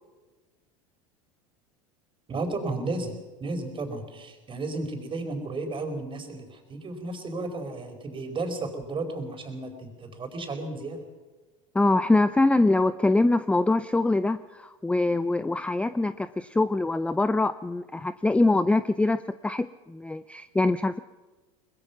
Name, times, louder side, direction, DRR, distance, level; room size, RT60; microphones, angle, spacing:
voice 1, 2.3-3.1 3.4-11.0, right 2 dB, 30° right, 5 dB, 4.8 m, -33 dB
voice 2, 11.7-21.0, left 2 dB, 5° left, 13 dB, 0.6 m, -24 dB
23.0 x 20.5 x 6.0 m, 1.3 s
hypercardioid pair, 85°, 17 cm